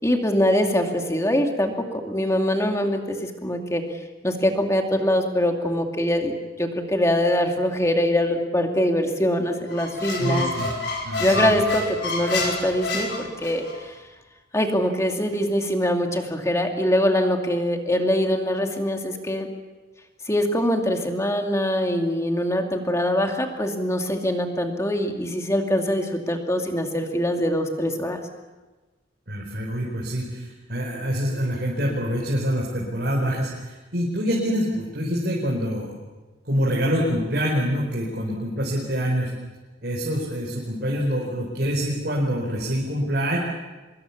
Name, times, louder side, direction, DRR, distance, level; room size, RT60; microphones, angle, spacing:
voice 1, 0.0-3.9 4.2-6.3 6.6-10.5 11.2-14.0 14.5-19.5 20.3-28.2, equal, 15° left, 3 dB, 2.3 m, -23 dB
Squeak, 9.7-13.8, left 2 dB, 70° left, 5.7 m, -28 dB
voice 2, 10.2-10.7 11.0-11.6 29.3-35.9 36.4-39.3 39.8-43.4, equal, 55° right, -3 dB, 4.6 m, -26 dB
24.5 x 22.0 x 7.2 m, 1.2 s
head